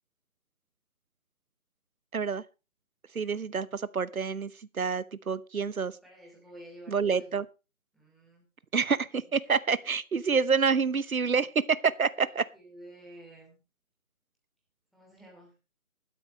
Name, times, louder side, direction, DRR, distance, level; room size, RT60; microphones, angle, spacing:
voice 1, 2.1-2.4 3.1-6.0 6.9-7.5 8.7-12.4, right 5 dB, 90° right, 1.0 m, -28 dB
voice 2, 6.0-7.4 7.9-8.4 12.5-13.6 14.9-15.5, right 1 dB, ahead, 2.7 m, -50 dB
15.5 x 12.5 x 3.1 m
figure-of-eight pair, 155°, 41 cm